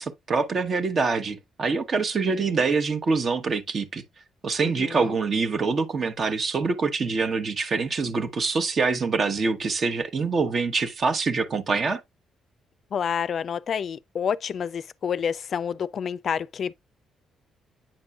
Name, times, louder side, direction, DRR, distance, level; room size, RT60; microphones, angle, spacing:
voice 1, 0.0-4.0 4.4-12.0, right 4 dB, 45° right, 1.0 m, -25 dB
voice 2, 2.2-2.6 4.6-5.2 12.9-16.7, left 7 dB, 55° left, 0.3 m, -29 dB
8.9 x 5.3 x 2.3 m
cardioid pair, 90°, 0 cm